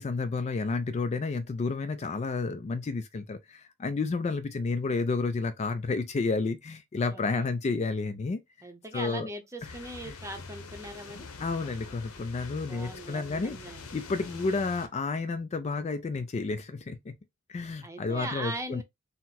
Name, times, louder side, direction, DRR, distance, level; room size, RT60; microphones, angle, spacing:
voice 1, 0.0-8.4 8.9-9.3 9.6-9.7 10.0-10.2 11.4-17.1 17.5-18.8, left 4 dB, 30° left, 0.3 m, -31 dB
voice 2, 7.0-7.5 8.6-11.3 12.7-13.9 14.2-14.5 17.8-18.8, right 1 dB, 15° right, 0.7 m, -40 dB
sound 1, 9.6-14.9, left 4 dB, 90° left, 0.8 m, -45 dB
4.0 x 2.1 x 4.1 m
head